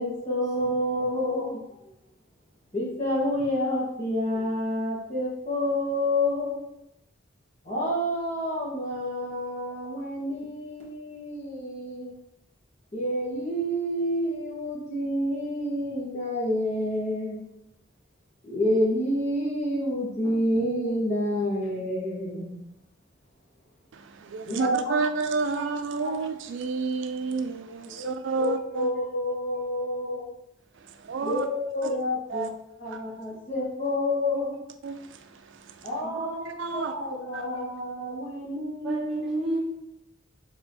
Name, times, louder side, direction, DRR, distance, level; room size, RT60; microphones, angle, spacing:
voice 1, 0.0-1.6 2.7-6.6 7.6-12.2 12.9-17.4 18.4-22.6 24.4-24.9 25.5-25.6 26.0-26.1 27.9-28.1 28.4-28.5 28.7-30.3 31.2-32.5 32.8-34.6 35.8-36.4 36.7-39.0, left 1 dB, 35° left, 1.3 m, -28 dB
voice 2, 23.9-28.9 30.7-31.5 31.8-31.9 32.3-32.5 32.9-33.0 34.8-35.9 36.4-37.0 37.3-37.5, right 4 dB, 75° right, 0.4 m, -31 dB
voice 3, 36.0-36.6 38.0-38.2 38.8-39.6, right 2 dB, ahead, 1.4 m, -31 dB
4.3 x 3.9 x 2.7 m
head